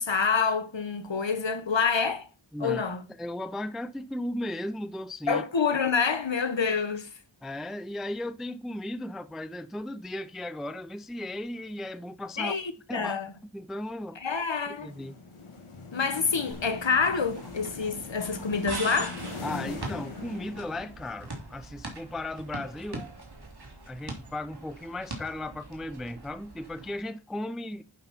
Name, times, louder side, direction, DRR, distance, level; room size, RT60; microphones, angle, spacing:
voice 1, 0.0-2.3 2.6-3.0 5.3-7.1 12.4-13.3 14.2-14.9 15.9-19.2, left 5 dB, 65° left, 1.3 m, -27 dB
voice 2, 2.5-2.8 3.2-5.4 7.4-12.6 12.9-14.2 14.7-15.2 19.4-23.1 23.9-27.8, left 1 dB, ahead, 0.4 m, -36 dB
sound 1, 14.8-21.3, left 3 dB, 85° left, 1.9 m, -42 dB
sound 2, 16.5-27.0, right 2 dB, 50° right, 2.6 m, -42 dB
11.0 x 5.3 x 4.3 m
wide cardioid pair, 60°, 49 cm